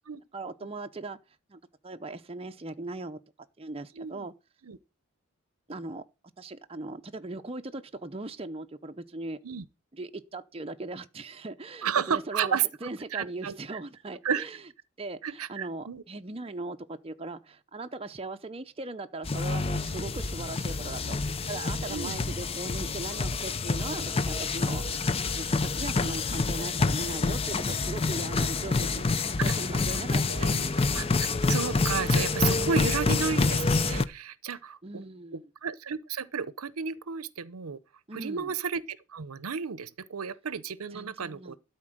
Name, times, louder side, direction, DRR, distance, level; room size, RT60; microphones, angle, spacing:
voice 1, 0.3-1.2 1.5-3.2 3.6-4.3 5.7-6.0 6.4-9.4 9.9-14.7 15.0-29.0 29.4-30.8 32.5-32.9 34.5-35.5 38.1-38.5 40.9-41.6, right 2 dB, 25° right, 0.6 m, -39 dB
voice 2, 4.0-4.3 4.7-4.8 9.4-9.6 11.8-12.6 13.1-13.6 14.2-14.4 15.2-16.0 21.9-22.2 29.4-29.5 30.3-35.0 35.6-37.8 38.1-41.6, right 6 dB, 80° right, 0.7 m, -32 dB
sound 1, 19.2-34.0, left 3 dB, 25° left, 0.5 m, -27 dB
12.5 x 4.4 x 7.6 m
head